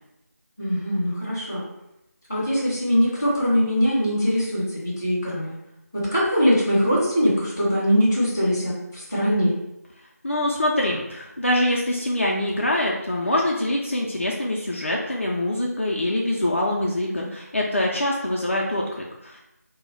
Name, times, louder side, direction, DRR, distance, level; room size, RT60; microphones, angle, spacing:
voice 1, 0.6-1.6 2.3-5.5 5.9-9.5, equal, 10° left, -11 dB, 0.6 m, -22 dB
voice 2, 10.2-19.4, left 1 dB, 50° left, -3 dB, 0.4 m, -24 dB
2.2 x 2.1 x 3.8 m, 0.87 s
figure-of-eight pair, 165°, 9 cm